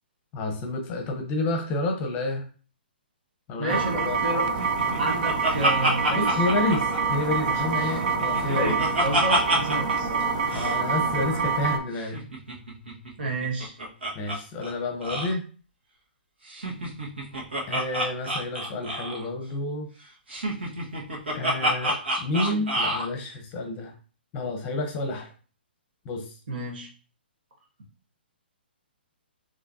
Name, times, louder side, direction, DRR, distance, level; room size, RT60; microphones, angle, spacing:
voice 1, 0.3-2.5 3.5-4.2 6.1-8.8 10.5-12.2 14.1-15.4 17.7-19.9 21.3-23.9 24.3-25.3 26.0-26.3, left 2 dB, 25° left, 3 dB, 0.8 m, -29 dB
voice 2, 3.6-4.5 5.0-6.4 7.9-8.1 8.4-10.3 13.2-13.8 26.5-26.9, right 1 dB, 60° right, 0 dB, 1.3 m, -31 dB
sound 1, 3.7-11.8, right 5 dB, 45° right, 0.6 m, -26 dB
Laughter, 4.6-7.5 7.8-9.9 10.2-10.3 10.5-10.7 12.0-14.4 14.6-14.7 15.0-15.3 16.5-19.3 20.3-23.1, right 1 dB, 90° right, 1.4 m, -28 dB
4.9 x 3.0 x 2.7 m, 0.38 s
hypercardioid pair, 145°, 6 cm